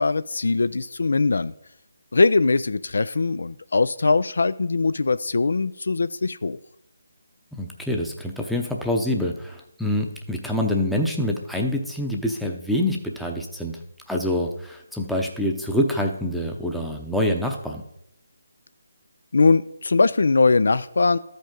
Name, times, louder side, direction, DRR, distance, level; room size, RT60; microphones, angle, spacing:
voice 1, 0.0-1.5 2.1-6.6 19.3-21.2, left 3 dB, 65° left, 14 dB, 0.3 m, -21 dB
voice 2, 7.5-13.8 14.1-17.8, left 1 dB, ahead, 0 dB, 0.7 m, -26 dB
13.5 x 5.2 x 3.8 m, 0.80 s
figure-of-eight pair, 150°, 0 cm